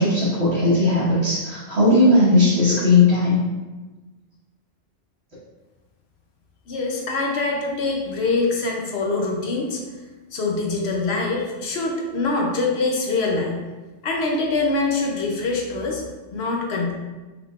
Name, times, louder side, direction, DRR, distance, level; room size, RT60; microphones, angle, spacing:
voice 1, 0.0-3.4, left 2 dB, 65° right, -13 dB, 1.6 m, -17 dB
voice 2, 6.7-9.8 10.3-13.6 14.0-16.0 16.3-16.9, left 3 dB, 65° left, 0 dB, 0.9 m, -24 dB
4.8 x 3.4 x 2.4 m, 1.2 s
omnidirectional pair, 1.2 m